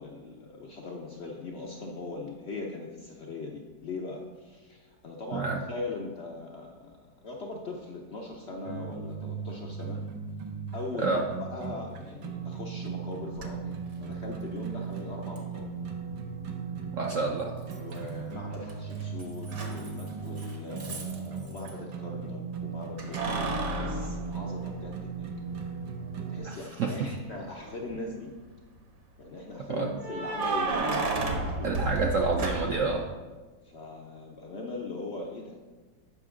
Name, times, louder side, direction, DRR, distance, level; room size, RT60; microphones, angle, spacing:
voice 1, 0.0-10.0 10.7-15.7 17.7-25.3 26.3-28.4 29.2-31.8 33.6-35.6, left 3 dB, 75° left, 0 dB, 0.6 m, -40 dB
sound 1, 8.6-26.4, right 5 dB, 90° right, 1.5 m, -37 dB
Keys jangling, 13.4-13.5 15.4-15.5 17.7-18.2 18.5-21.7 23.0-25.1 25.6-25.7 27.5-28.0 30.0-32.9, right 3 dB, 50° right, 1.0 m, -32 dB
voice 2, 16.9-17.5 26.4-27.1 29.7-29.9 31.6-33.0, right 4 dB, 70° right, 1 dB, 0.7 m, -28 dB
8.1 x 5.8 x 3.7 m, 1.3 s
omnidirectional pair, 2.0 m